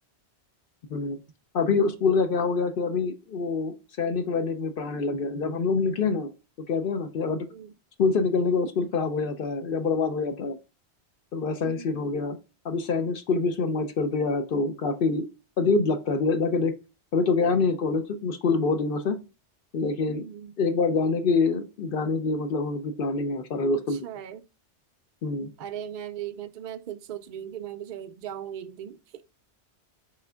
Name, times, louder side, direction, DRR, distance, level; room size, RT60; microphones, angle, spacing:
voice 1, 1.5-6.3 6.7-7.5 8.0-10.6 11.3-12.4 12.6-15.2 15.6-16.7 17.1-19.2 19.7-20.2 20.6-24.0 25.2-25.5, left 4 dB, 60° left, 0.7 m, -25 dB
voice 2, 11.6-12.1 20.1-20.5 23.7-24.4 25.6-29.2, right 10 dB, 60° right, 0.5 m, -38 dB
4.8 x 4.2 x 2.2 m
omnidirectional pair, 1.2 m